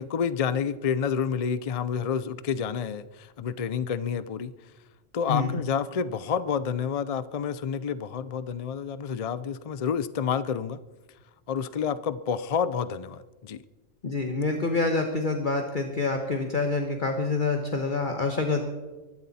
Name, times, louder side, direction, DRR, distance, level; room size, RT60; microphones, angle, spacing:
voice 1, 0.0-4.5 5.1-10.8 11.5-13.6, left 7 dB, 55° left, 14 dB, 0.4 m, -29 dB
voice 2, 14.0-18.6, left 3 dB, 40° left, 4 dB, 1.4 m, -27 dB
23.5 x 12.0 x 4.2 m, 1.2 s
omnidirectional pair, 1.3 m